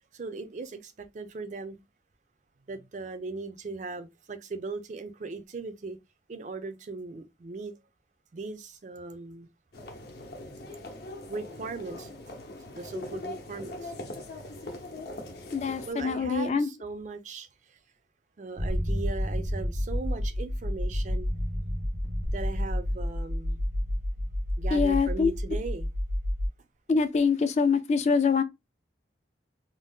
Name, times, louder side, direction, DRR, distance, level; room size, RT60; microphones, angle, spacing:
voice 1, 0.1-1.8 2.7-6.0 6.3-7.7 8.3-9.5 11.3-12.1 12.7-13.9 14.6-14.7 15.9-17.8 18.4-21.3 22.3-23.6 24.6-25.9, right 3 dB, 45° right, 0.4 m, -38 dB
sound 1, 9.7-15.9, left 1 dB, 60° left, 0.7 m, -41 dB
voice 2, 15.5-16.7 24.7-25.3 26.9-28.4, left 5 dB, 40° left, 0.3 m, -24 dB
sound 2, 18.6-26.5, equal, 80° right, 0.8 m, -30 dB
2.7 x 2.0 x 3.4 m
head